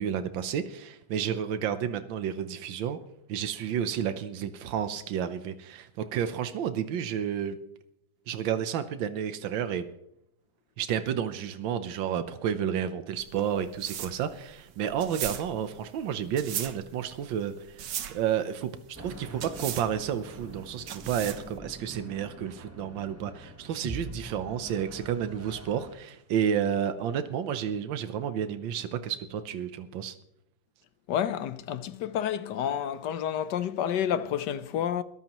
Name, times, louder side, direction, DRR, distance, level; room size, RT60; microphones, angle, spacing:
voice 1, 0.0-3.0 3.3-7.6 8.3-9.8 10.8-17.8 18.1-30.1, right 9 dB, 85° right, 1.6 m, -31 dB
sound 1, 13.2-21.6, right 10 dB, 70° right, 1.5 m, -38 dB
sound 2, 18.9-25.9, right 1 dB, 10° right, 0.7 m, -44 dB
voice 2, 31.1-35.0, left 9 dB, 70° left, 1.4 m, -29 dB
22.0 x 13.0 x 3.0 m
omnidirectional pair, 2.0 m